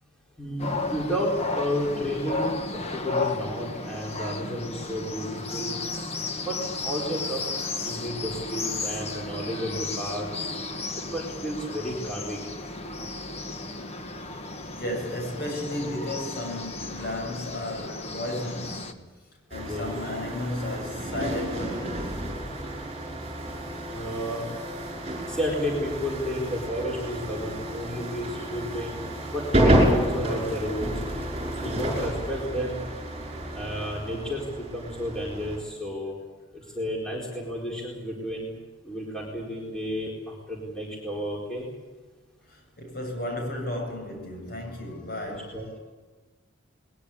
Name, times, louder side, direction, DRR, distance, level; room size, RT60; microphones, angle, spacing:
voice 1, 0.4-5.8 6.4-7.4 7.8-10.5 11.0-12.4 19.6-19.9 23.9-24.5 25.3-29.0 29.3-31.0 31.6-32.8 33.5-36.1 36.5-38.5 38.8-41.7 45.3-45.8, equal, 5° left, 4.4 m, -32 dB
sound 1, 0.6-18.9, left 3 dB, 30° left, 1.5 m, -34 dB
voice 2, 14.7-19.2 19.5-22.2 42.5-45.8, left 1 dB, 50° left, 7.5 m, -34 dB
sound 2, 19.5-35.6, right 1 dB, 30° right, 5.8 m, -30 dB
21.5 x 21.0 x 8.6 m
head